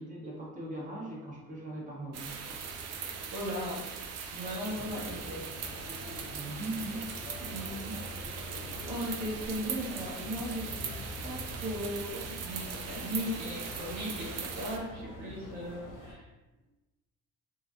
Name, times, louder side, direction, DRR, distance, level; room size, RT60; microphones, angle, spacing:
voice 1, 0.0-2.5 6.3-7.1, right 2 dB, 20° right, -3 dB, 0.8 m, -40 dB
sound 1, 2.1-14.8, right 6 dB, 40° right, 0.4 m, -40 dB
voice 2, 3.3-3.8 4.3-5.5 5.9-6.2 7.4-8.4 8.9-16.2, equal, 75° right, -6 dB, 1.1 m, -38 dB
sound 2, 4.7-16.1, left 2 dB, 50° left, 0.7 m, -46 dB
2.6 x 2.1 x 2.6 m, 1.1 s
hypercardioid pair, 50°, 41 cm